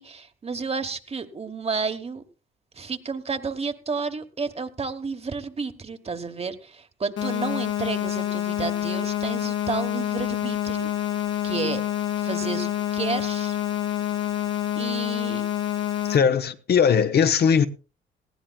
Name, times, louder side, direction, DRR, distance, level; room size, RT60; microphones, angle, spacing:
voice 1, 0.0-2.2 2.7-11.8 12.2-13.6 14.8-15.4, right 4 dB, 30° right, 1.2 m, -31 dB
sound 1, 7.2-16.2, left 11 dB, 85° left, 2.7 m, -27 dB
voice 2, 16.0-17.7, left 7 dB, 55° left, 0.9 m, -19 dB
19.5 x 15.0 x 2.3 m
cardioid pair, 90°, 20 cm